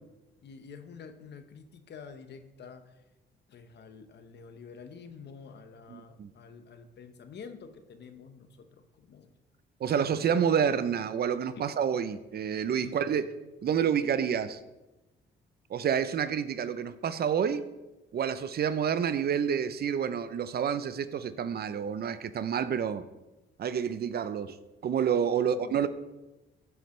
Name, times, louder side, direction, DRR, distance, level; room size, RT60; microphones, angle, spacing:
voice 1, 0.4-3.0 3.5-9.3 9.9-10.1 11.6-11.7 12.8-13.3 25.5-25.8, left 5 dB, 60° left, 8 dB, 1.1 m, -48 dB
voice 2, 5.9-6.3 9.8-13.2 13.6-14.6 15.7-17.7 18.1-23.0 23.6-24.6 24.8-25.9, right 8 dB, 50° right, 13 dB, 0.6 m, -28 dB
14.5 x 7.9 x 3.3 m, 1.1 s
cardioid pair, 90°, 20 cm